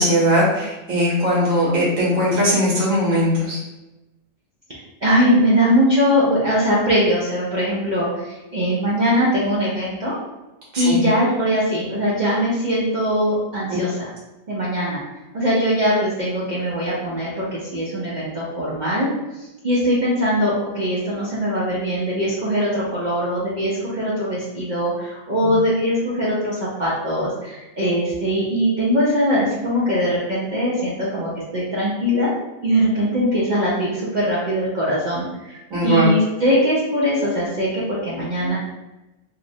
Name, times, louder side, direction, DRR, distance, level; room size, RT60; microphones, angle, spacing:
voice 1, 0.0-3.6 10.7-11.0 13.7-13.8 35.7-36.1, equal, 80° right, -7 dB, 1.2 m, -19 dB
voice 2, 5.0-10.1 10.8-14.1 14.5-15.0 15.3-19.1 19.3-32.3 32.6-38.6, equal, 60° right, -7 dB, 0.5 m, -21 dB
2.9 x 2.0 x 2.6 m, 1.0 s
omnidirectional pair, 1.4 m